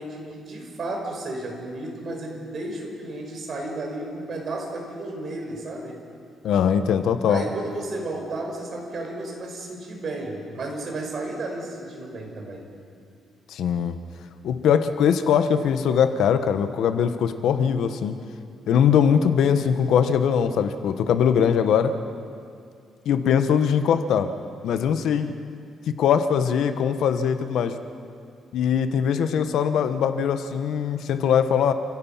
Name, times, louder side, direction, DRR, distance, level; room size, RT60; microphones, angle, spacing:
voice 1, 0.0-6.0 7.3-12.7, right 2 dB, 50° right, 1 dB, 5.0 m, -33 dB
voice 2, 6.4-7.4 13.5-14.0 14.4-18.2 18.7-21.9 23.0-24.3 24.6-25.3 26.0-27.7 28.5-31.7, left 8 dB, 80° left, 9 dB, 1.2 m, -21 dB
29.0 x 16.0 x 5.8 m, 2.4 s
cardioid pair, 120°, 0 cm